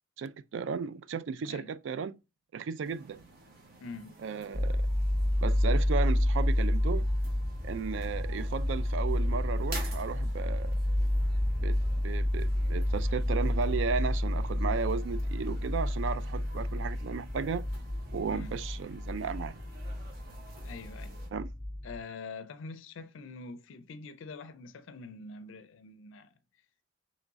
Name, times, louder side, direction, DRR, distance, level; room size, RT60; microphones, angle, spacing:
voice 1, 0.2-2.2 2.5-3.2 4.2-4.9 5.4-7.1 7.6-10.7 11.6-17.7 18.1-19.6 21.3-21.5, right 5 dB, 65° right, 0.3 m, -35 dB
sound 1, 2.8-21.3, right 3 dB, 50° right, 1.0 m, -51 dB
voice 2, 3.8-4.2 18.3-18.6 20.6-21.2 21.8-26.3, left 4 dB, 75° left, 0.4 m, -45 dB
sound 2, 4.5-22.0, left 1 dB, 5° right, 0.5 m, -30 dB
3.5 x 3.2 x 3.9 m
head